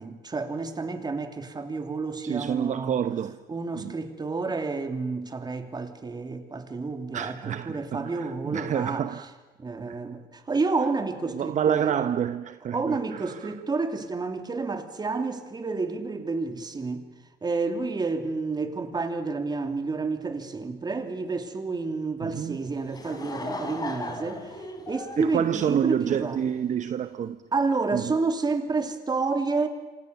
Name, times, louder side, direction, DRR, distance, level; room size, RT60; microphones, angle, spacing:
voice 1, 0.0-3.0 3.5-9.1 9.6-12.0 12.7-17.0 17.4-26.4 27.5-29.7, right 3 dB, 25° right, 3.1 m, -30 dB
voice 2, 2.2-3.4 3.7-3.9 7.1-9.3 9.9-10.0 11.3-13.5 22.2-22.6 25.2-27.4 27.9-28.1, right 9 dB, 45° right, 0.9 m, -28 dB
Laughter / Crowd, 22.6-26.4, left 2 dB, 25° left, 4.1 m, -37 dB
27.0 x 26.5 x 7.1 m
cardioid pair, 110°, 17 cm